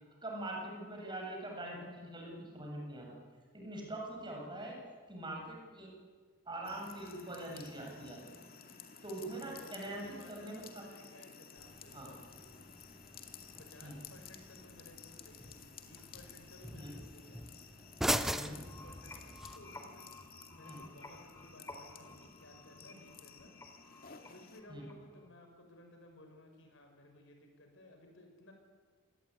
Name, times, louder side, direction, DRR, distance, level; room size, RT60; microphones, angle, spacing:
voice 1, 0.2-3.2 3.5-4.8 5.1-5.9 6.5-8.2 9.0-10.8 11.9-12.1 13.8-14.0 16.7-17.0 18.4-18.6 20.6-20.8 24.7-24.9, right 1 dB, 20° right, 0 dB, 7.4 m, -43 dB
Suburban Man Pissing Outside in Parking Lot, 6.6-24.6, left 6 dB, 45° left, 2.6 m, -55 dB
voice 2, 9.4-12.2 13.6-17.4 17.8-20.1 20.5-23.5 24.1-28.5, left 1 dB, 65° left, 3 dB, 6.8 m, -57 dB
sound 1, 11.6-19.6, equal, ahead, 1.0 m, -41 dB
sound 2, 18.5-25.3, left 2 dB, 15° left, 3.5 m, -53 dB
27.0 x 19.5 x 9.7 m, 1.5 s
head